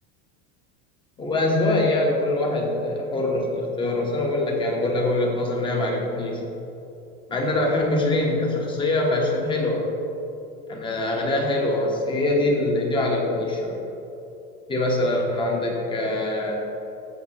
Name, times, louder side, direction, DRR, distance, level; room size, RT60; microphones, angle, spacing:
voice 1, 1.2-6.4 7.3-9.9 10.7-13.8 14.7-16.5, left 2 dB, 15° left, 0 dB, 1.2 m, -23 dB
15.0 x 5.9 x 3.0 m, 2.9 s
supercardioid pair, 155°, 32 cm